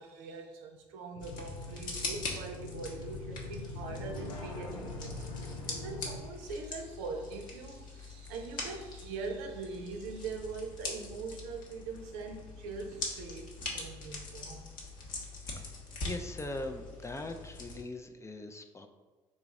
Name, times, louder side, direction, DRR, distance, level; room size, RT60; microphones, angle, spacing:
voice 1, 0.0-14.7, right 4 dB, 70° right, 3 dB, 0.6 m, -42 dB
sound 1, 1.1-6.2, left 2 dB, 80° left, 0.5 m, -42 dB
sound 2, 1.2-17.8, left 3 dB, 55° left, 1.1 m, -43 dB
voice 2, 16.1-18.9, left 2 dB, 15° left, 6 dB, 0.5 m, -41 dB
4.2 x 2.9 x 3.6 m, 1.2 s
hypercardioid pair, 55°, 16 cm